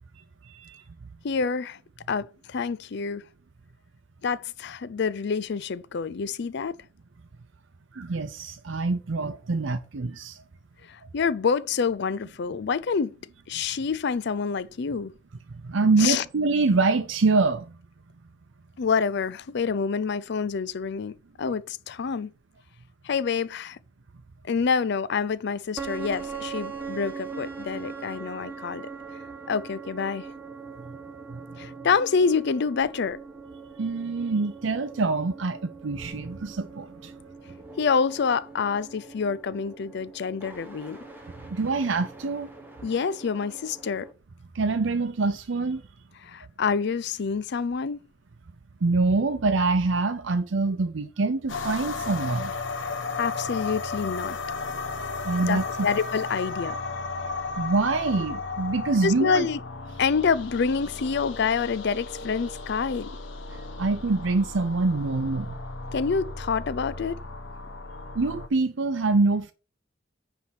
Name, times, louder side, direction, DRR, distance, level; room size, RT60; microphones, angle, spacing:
voice 1, 0.4-0.8 7.9-10.4 15.5-17.7 31.3-31.4 33.8-37.1 41.4-42.5 44.5-45.8 48.8-52.5 55.2-55.9 57.6-59.5 63.5-65.5 68.1-69.5, right 3 dB, 80° right, 0.6 m, -25 dB
voice 2, 1.2-1.8 2.1-3.2 4.2-6.8 10.9-13.1 13.5-15.1 16.0-16.2 18.8-22.3 23.0-23.8 24.4-28.9 29.5-30.3 31.6-33.2 37.8-41.0 42.8-44.1 46.2-48.0 52.9-54.4 55.4-56.8 59.0-59.6 60.0-63.1 65.9-67.2, left 5 dB, 60° left, 0.5 m, -27 dB
sound 1, 25.8-44.1, right 5 dB, 10° right, 1.3 m, -41 dB
sound 2, 51.5-68.5, left 3 dB, 80° left, 1.0 m, -35 dB
9.6 x 3.5 x 6.2 m
head